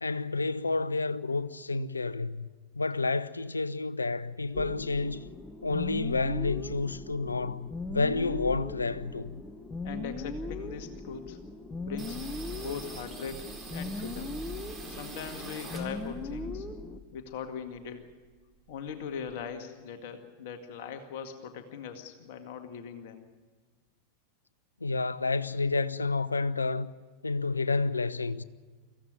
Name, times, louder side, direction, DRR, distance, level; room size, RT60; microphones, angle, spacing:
voice 1, 0.0-2.5 2.7-5.3 5.6-9.4 24.8-26.9 27.2-28.4, left 3 dB, 80° left, 0.7 m, -30 dB
sound 1, 4.5-17.0, left 2 dB, 15° left, 1.4 m, -39 dB
voice 2, 9.8-11.4 11.8-14.4 14.9-16.7 17.1-18.1 18.7-23.3, left 7 dB, 50° left, 1.9 m, -40 dB
sound 2, 12.0-16.3 16.7-18.0 18.3-18.4 18.7-19.4, right 3 dB, 15° right, 4.6 m, -46 dB
24.0 x 15.5 x 9.9 m
figure-of-eight pair, 90°, 0 cm